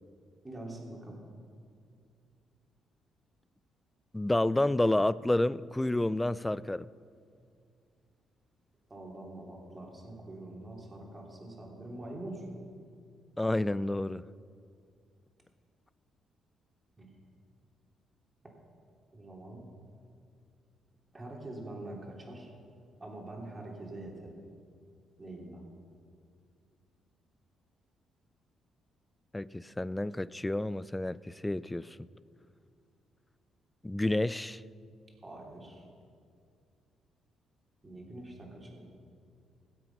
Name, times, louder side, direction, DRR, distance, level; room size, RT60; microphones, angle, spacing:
voice 1, 0.4-1.2 8.9-12.5 17.0-17.1 19.1-19.6 21.1-22.5 23.0-24.4 25.2-25.6 35.2-35.8 37.8-38.9, right 1 dB, 25° right, 3.2 m, -44 dB
voice 2, 4.1-6.9 13.4-14.2 29.3-31.9 33.8-34.6, left 1 dB, 10° left, 0.3 m, -29 dB
17.5 x 7.9 x 5.9 m
cardioid pair, 90°, 0 cm